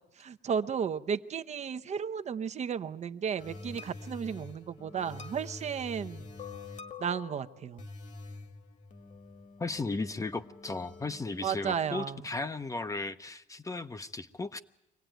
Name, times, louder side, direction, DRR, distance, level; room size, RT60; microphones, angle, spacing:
voice 1, 0.2-6.3 7.0-7.8 11.4-12.2, right 7 dB, 40° right, 10 dB, 0.8 m, -34 dB
sound 1, 3.4-12.0, left 3 dB, 50° left, 1.9 m, -46 dB
voice 2, 9.6-14.6, left 3 dB, 20° left, 11 dB, 0.8 m, -35 dB
24.0 x 17.5 x 9.2 m, 0.88 s
cardioid pair, 110°, 17 cm